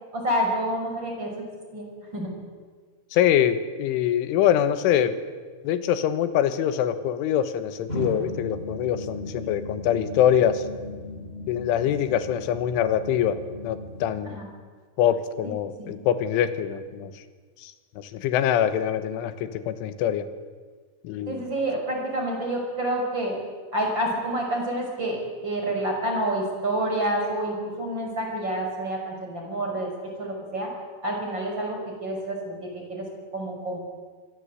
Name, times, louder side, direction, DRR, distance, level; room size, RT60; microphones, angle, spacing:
voice 1, 0.1-1.3 1.7-1.9 2.1-2.3 14.3-14.5 15.8-16.0 21.3-23.4 23.7-29.9 30.2-30.7 31.0-33.0 33.3-33.8, right 1 dB, 25° right, 1 dB, 6.1 m, -28 dB
voice 2, 3.1-5.2 5.6-10.6 11.5-13.4 13.6-14.4 15.0-17.1 17.6-20.3 21.0-21.5, left 10 dB, 90° left, 11 dB, 3.7 m, -24 dB
sound 1, 7.9-14.1, left 1 dB, 10° left, 5.1 m, -37 dB
26.0 x 22.5 x 8.1 m, 1.5 s
omnidirectional pair, 5.5 m